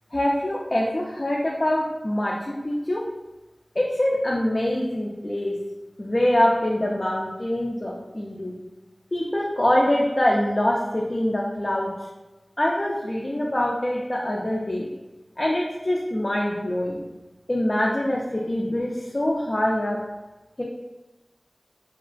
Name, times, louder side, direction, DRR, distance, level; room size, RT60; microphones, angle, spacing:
voice 1, 0.1-3.0 3.8-5.6 6.0-8.5 9.1-11.9 12.6-14.9 15.4-17.0 17.5-20.0 20.6-20.7, left 1 dB, 40° left, -3 dB, 0.3 m, -24 dB
2.8 x 2.3 x 2.4 m, 1.1 s
wide cardioid pair, 40°, 0 cm